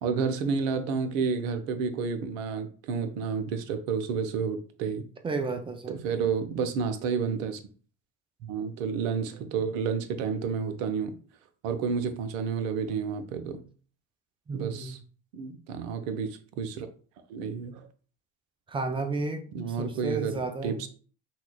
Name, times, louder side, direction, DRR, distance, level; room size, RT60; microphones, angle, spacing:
voice 1, 0.0-5.1 5.9-7.6 8.4-11.2 11.6-13.6 14.5-15.0 15.3-16.9 17.3-17.9 19.5-20.9, right 6 dB, 60° right, 0.7 m, -30 dB
voice 2, 5.2-6.0 14.5-15.0 18.7-20.9, right 3 dB, 15° right, 0.3 m, -32 dB
5.5 x 2.2 x 2.3 m
figure-of-eight pair, 60°, 45 cm